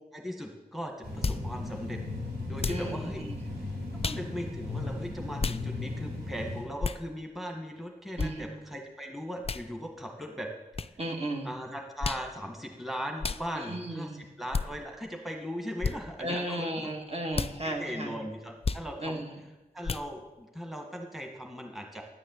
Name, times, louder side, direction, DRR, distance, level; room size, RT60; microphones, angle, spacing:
voice 1, 0.1-2.0 2.5-3.2 4.0-10.5 11.4-16.9 17.6-19.2 19.7-22.0, equal, ahead, 2 dB, 1.6 m, -38 dB
sound 1, 1.0-6.6, left 2 dB, 85° right, 3.0 m, -36 dB
sound 2, 1.2-1.5 2.6-2.9 4.0-4.3 5.4-5.6 6.8-7.0 8.2-8.3 9.4-9.7 10.7-10.9 12.0-12.3 13.2-13.4 14.5-14.7 15.8-16.0 17.3-17.6 18.6-18.9 19.8-20.1, left 4 dB, 40° left, 0.4 m, -31 dB
voice 2, 2.7-3.4 8.2-8.6 11.0-11.5 13.6-14.2 16.2-18.2 19.0-19.3, right 1 dB, 40° right, 1 dB, 2.0 m, -35 dB
10.0 x 6.5 x 7.7 m, 1.1 s
cardioid pair, 40°, 16 cm